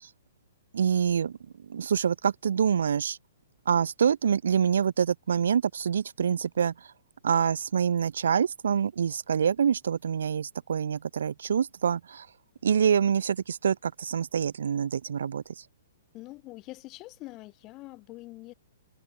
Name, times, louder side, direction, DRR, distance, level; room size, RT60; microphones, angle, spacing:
voice 1, 0.7-1.4 1.7-3.2 3.7-6.7 7.2-12.3 12.6-15.4, right 7 dB, 65° right, 0.4 m, -26 dB
voice 2, 16.1-18.5, left 20 dB, 30° left, 2.1 m, -44 dB
figure-of-eight pair, 115°, 0 cm